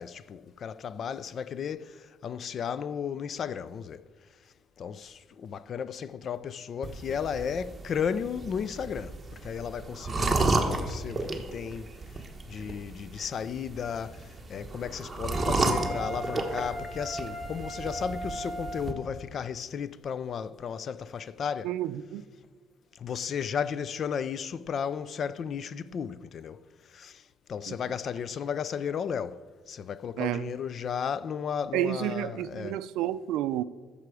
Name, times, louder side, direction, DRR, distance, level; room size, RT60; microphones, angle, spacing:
voice 1, 0.0-4.0 4.8-11.9 12.5-21.7 23.0-26.6 26.9-27.2 27.5-29.4 29.7-32.8, left 7 dB, 40° left, 0.4 m, -34 dB
sound 1, 6.8-18.9, right 3 dB, 15° right, 1.0 m, -33 dB
Wind instrument woodwind instrument, 15.3-19.1, right 1 dB, 5° left, 1.3 m, -38 dB
voice 2, 21.6-22.2 27.7-27.8 30.2-30.5 31.7-33.6, right 12 dB, 90° right, 0.4 m, -30 dB
14.5 x 6.8 x 4.8 m
cardioid pair, 165°, 0 cm